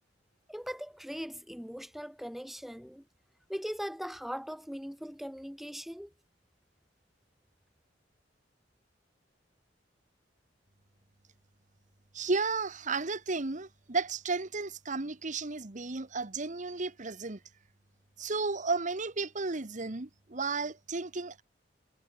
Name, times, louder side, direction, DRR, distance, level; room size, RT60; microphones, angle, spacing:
voice 1, 0.5-3.0 3.5-6.1, equal, ahead, 1.2 m, -40 dB
voice 2, 12.1-17.4 18.2-21.4, right 3 dB, 45° right, 1.3 m, -33 dB
head